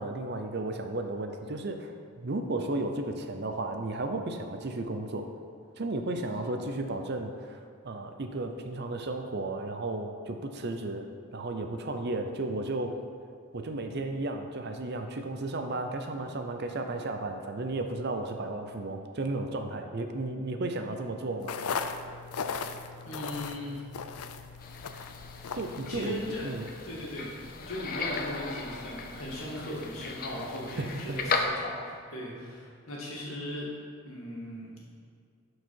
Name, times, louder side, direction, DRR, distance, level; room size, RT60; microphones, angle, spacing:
voice 1, 0.0-5.3 5.8-11.1 11.3-12.9 13.5-21.5 25.5-26.1 26.4-26.7 30.8-31.2, right 2 dB, 50° right, 5 dB, 0.6 m, -34 dB
sound 1, 21.4-26.5, left 5 dB, 90° left, 0.5 m, -37 dB
voice 2, 23.0-23.8 25.9-26.5 26.8-27.3 27.6-33.7 34.0-34.7, left 1 dB, 70° left, -5 dB, 2.3 m, -38 dB
sound 2, 24.6-31.5, left 4 dB, 40° left, 0.7 m, -37 dB
12.0 x 4.8 x 4.6 m, 2.2 s
head